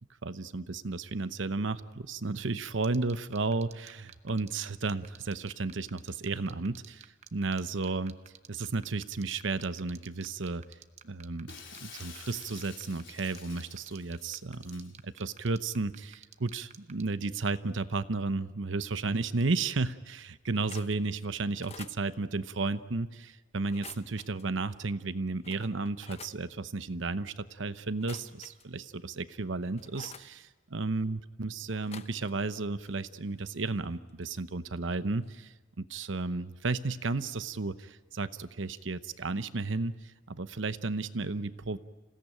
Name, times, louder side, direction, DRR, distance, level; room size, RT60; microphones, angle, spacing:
voice 1, 0.2-8.2 8.5-10.6 11.0-11.5 11.8-41.8, right 3 dB, 75° right, 13 dB, 0.9 m, -33 dB
sound 1, 2.8-17.0, right 8 dB, 35° right, 0.8 m, -50 dB
Shatter, 11.5-14.9, left 6 dB, 70° left, 4.0 m, -50 dB
sound 2, 20.5-21.0 21.5-22.0 23.6-24.4 25.0-25.1 25.4-26.4 27.9-28.9 29.3-30.3 31.7-32.6 32.8-34.4 34.8-35.0 35.2-35.4, left 6 dB, 30° left, 0.8 m, -51 dB
27.0 x 17.0 x 9.0 m, 1.3 s
head